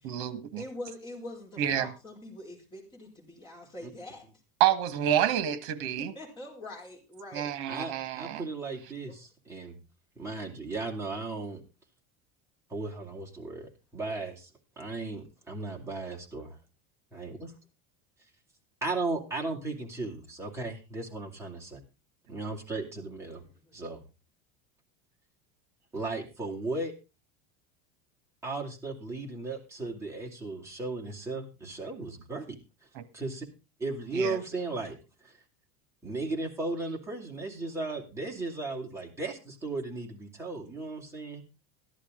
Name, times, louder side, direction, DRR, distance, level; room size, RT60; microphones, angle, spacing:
voice 1, 0.0-0.6 1.6-1.9 4.6-6.1 7.3-8.5 32.9-33.0 34.1-34.4, right 11 dB, 60° right, 1.6 m, -28 dB
voice 2, 0.6-4.3 6.0-7.6 9.1-9.2 22.4-22.5 23.3-23.7, left 1 dB, 15° left, 4.4 m, -44 dB
voice 3, 7.7-9.8 10.2-11.6 12.7-14.5 14.8-16.6 17.1-17.5 18.8-21.8 22.3-23.4 23.7-24.0 25.9-26.9 28.4-32.6 33.1-33.5 33.8-35.0 35.2-35.4 36.0-41.4, right 3 dB, 10° right, 2.5 m, -36 dB
14.0 x 11.5 x 3.7 m
cardioid pair, 165°, 32 cm